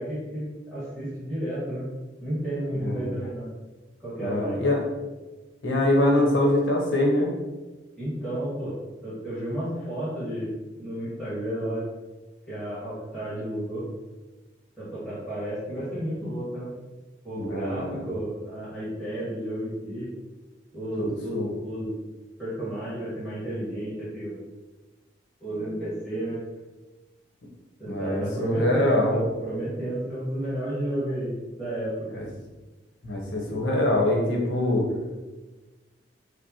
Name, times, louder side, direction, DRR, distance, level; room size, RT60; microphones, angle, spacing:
voice 1, 0.0-1.9 2.2-3.5 4.0-4.6 7.9-11.9 12.5-13.9 14.8-16.7 17.2-20.1 20.7-21.9 22.4-24.4 25.4-26.4 27.8-32.2, right 1 dB, 5° left, -12 dB, 1.4 m, -32 dB
voice 2, 2.8-3.1 4.2-4.8 5.6-7.3 17.3-18.1 21.0-21.5 27.9-29.3 33.0-34.9, left 1 dB, 85° left, 0 dB, 0.9 m, -24 dB
5.1 x 2.1 x 2.9 m, 1.2 s
head